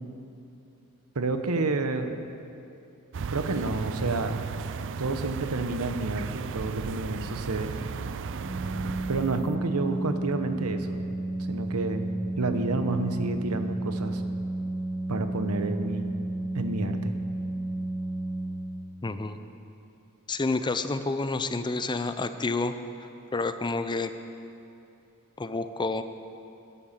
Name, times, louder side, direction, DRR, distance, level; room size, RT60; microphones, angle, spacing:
voice 1, 1.1-2.2 3.3-4.4 5.0-7.7 9.1-11.1 11.5-14.2 15.1-16.1 16.5-17.1, right 3 dB, 80° right, 8 dB, 1.0 m, -29 dB
sound 1, 3.1-9.5, right 5 dB, 60° right, 0.4 m, -35 dB
Organ, 8.4-19.2, right 2 dB, 20° right, 1.4 m, -32 dB
voice 2, 19.0-19.4 20.3-22.8 23.3-24.1 25.4-26.0, left 3 dB, 20° left, 10 dB, 0.5 m, -29 dB
12.5 x 11.0 x 7.4 m, 2.7 s
head